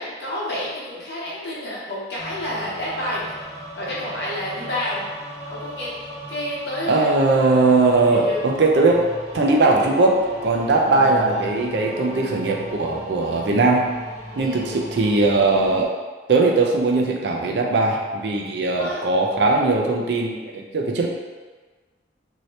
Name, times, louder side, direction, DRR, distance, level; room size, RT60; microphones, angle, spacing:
voice 1, 0.0-3.2 3.8-5.1 5.4-5.9 6.3-7.1 8.1-8.4 11.0-11.1 11.5-11.6 14.3-14.8 18.8-19.0, left 1 dB, 60° left, -6 dB, 0.9 m, -29 dB
sound 1, 2.2-15.8, equal, 20° left, 0.6 m, -38 dB
voice 2, 6.9-9.1 9.3-13.8 14.4-15.9 16.3-21.1, right 3 dB, 65° right, 1 dB, 0.4 m, -19 dB
sound 2, 9.3-14.8, left 2 dB, 85° left, 0.7 m, -38 dB
2.8 x 2.7 x 3.1 m, 1.4 s
head